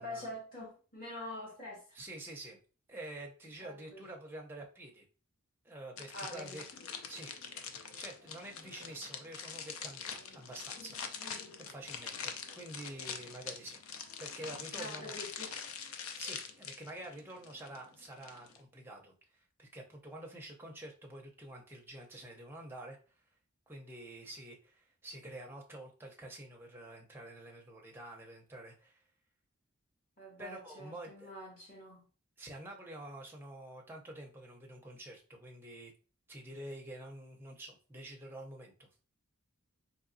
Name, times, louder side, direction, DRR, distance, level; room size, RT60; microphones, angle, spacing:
voice 1, 0.0-2.0 3.6-4.0 6.1-6.7 14.7-15.5 30.2-32.0, left 1 dB, 40° left, 1.8 m, -45 dB
voice 2, 1.9-2.6 2.9-5.0 5.6-6.6 7.1-13.8 14.2-15.2 16.2-19.1 19.6-23.0 23.7-29.0 30.4-31.3 32.4-35.9 36.3-38.9, right 1 dB, 10° right, 0.6 m, -48 dB
sound 1, 6.0-18.6, left 6 dB, 75° left, 0.5 m, -44 dB
3.9 x 3.1 x 2.6 m
head